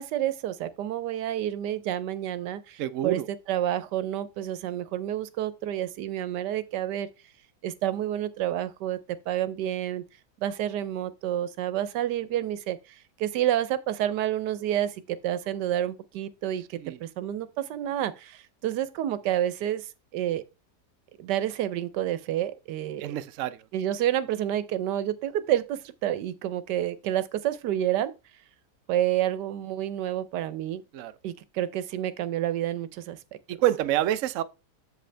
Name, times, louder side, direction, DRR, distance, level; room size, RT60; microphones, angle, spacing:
voice 1, 0.0-3.2 3.5-7.1 7.6-9.0 9.3-10.0 10.4-20.4 21.2-23.1 23.7-28.1 28.9-30.8 31.2-33.2, right 12 dB, 85° right, 1.3 m, -29 dB
voice 2, 2.8-3.3 16.7-17.0 23.0-23.6 30.9-31.1 33.5-34.4, right 13 dB, 65° right, 0.8 m, -27 dB
7.7 x 7.1 x 3.3 m
omnidirectional pair, 1.8 m